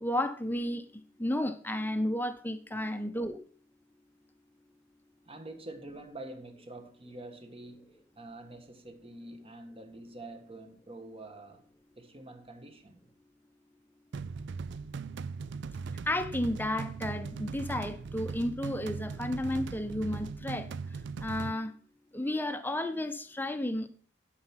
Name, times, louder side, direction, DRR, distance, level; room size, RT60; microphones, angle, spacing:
voice 1, 0.0-0.8 1.2-3.4 16.1-20.7 21.2-21.7 22.1-23.9, left 1 dB, 10° left, 0.8 m, -32 dB
voice 2, 5.2-11.7 11.9-13.1, right 2 dB, 30° right, 1.4 m, -47 dB
sound 1, 14.1-21.5, right 5 dB, 60° right, 0.4 m, -39 dB
11.5 x 5.9 x 5.8 m
head